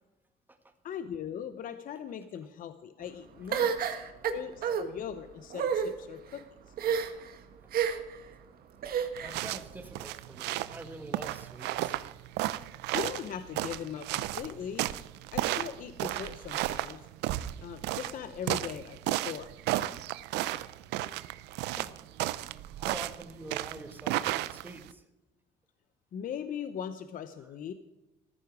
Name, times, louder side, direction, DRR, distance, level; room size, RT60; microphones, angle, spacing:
voice 1, 0.8-4.0 4.3-6.4 12.9-14.9 15.3-17.1 17.6-19.5 26.1-27.7, left 8 dB, 55° left, 10 dB, 0.9 m, -39 dB
sound 1, 3.5-4.8 5.5-5.9 6.8-7.3 7.7-8.2 8.8-9.4, right 8 dB, 60° right, 1.5 m, -29 dB
voice 2, 7.0-7.3 9.2-12.0 21.8-21.9 22.8-25.1 27.4-27.5, right 2 dB, 10° right, 6 dB, 1.9 m, -46 dB
sound 2, 9.2-24.9, right 15 dB, 90° right, 0.6 m, -34 dB
14.0 x 14.0 x 4.8 m, 1.0 s
cardioid pair, 110°, 17 cm